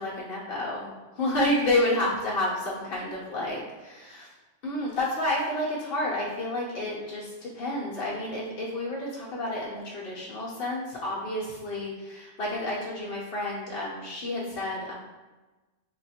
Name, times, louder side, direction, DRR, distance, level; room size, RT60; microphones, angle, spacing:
voice 1, 0.0-4.3 4.6-14.9, left 1 dB, 55° left, -5 dB, 0.9 m, -30 dB
3.4 x 2.3 x 4.1 m, 1.2 s
omnidirectional pair, 1.3 m